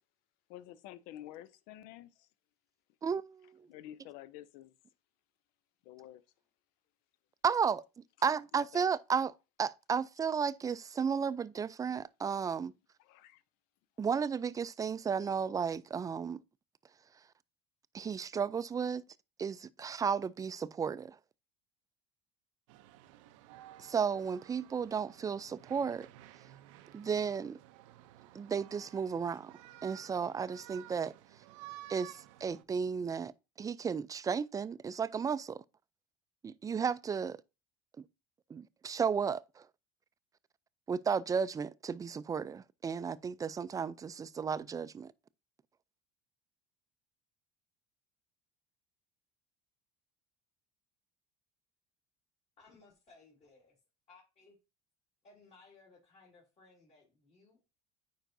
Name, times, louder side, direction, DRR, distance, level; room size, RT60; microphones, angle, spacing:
voice 1, 0.5-2.3 3.7-4.8 5.8-6.2 8.5-8.9 13.0-13.4, left 13 dB, 70° left, 0.5 m, -50 dB
voice 2, 3.0-3.7 7.4-7.8 8.2-12.7 14.0-16.4 17.9-19.0 19.4-21.2 23.8-26.1 26.9-27.6 28.3-29.5 29.8-31.1 31.9-33.3 33.6-35.6 36.4-37.4 38.0-38.1 38.5-39.7 40.9-45.1, right 6 dB, 20° right, 0.4 m, -34 dB
sound 1, 22.7-32.6, right 15 dB, 85° right, 0.6 m, -54 dB
voice 3, 52.6-53.8 54.1-54.6 55.2-57.6, left 3 dB, 45° left, 3.0 m, -61 dB
9.1 x 4.6 x 2.6 m
supercardioid pair, 90°, 16 cm